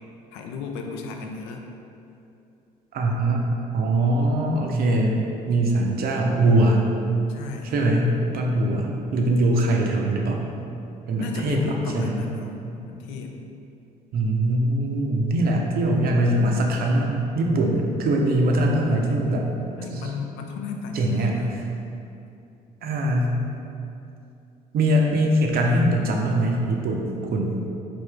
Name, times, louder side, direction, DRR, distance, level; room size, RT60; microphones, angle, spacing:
voice 1, 0.3-1.6 4.0-4.1 7.3-7.7 11.2-12.5 12.8-13.4 19.8-21.7, left 4 dB, 60° left, 2 dB, 0.4 m, -34 dB
voice 2, 2.9-6.8 7.6-10.4 11.1-12.2 14.1-19.5 20.9-21.6 22.8-23.3 24.7-27.0 27.3-27.5, right 1 dB, 50° right, 0 dB, 0.5 m, -22 dB
3.4 x 2.6 x 3.3 m, 2.7 s
figure-of-eight pair, 50°, 21 cm